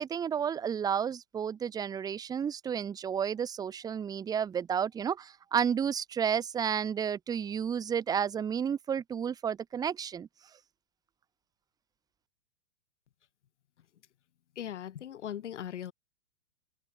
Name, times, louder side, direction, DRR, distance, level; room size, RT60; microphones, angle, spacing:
voice 1, 0.0-10.3, right 8 dB, 10° right, 0.6 m, -31 dB
voice 2, 14.6-15.9, left 10 dB, 70° left, 1.5 m, -39 dB
hypercardioid pair, 120°, 36 cm